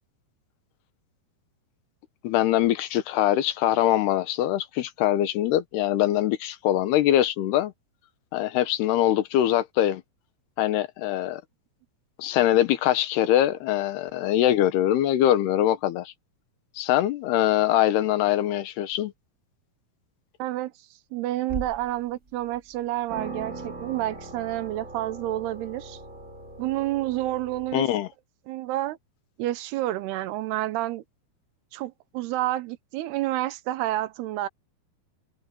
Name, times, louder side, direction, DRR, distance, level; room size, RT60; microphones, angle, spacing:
voice 1, 2.2-7.7 8.3-10.0 10.6-11.4 12.2-16.1 16.8-19.1 27.7-28.1, left 12 dB, 90° left, 3.2 m, -23 dB
voice 2, 20.4-20.7 21.1-26.0 26.6-27.9 28.5-29.0 29.4-31.0 31.7-34.5, right 15 dB, 90° right, 3.0 m, -29 dB
sound 1, 21.5-22.0 22.5-22.6 23.1-27.8, right 2 dB, 25° right, 2.4 m, -39 dB
omnidirectional pair, 4.5 m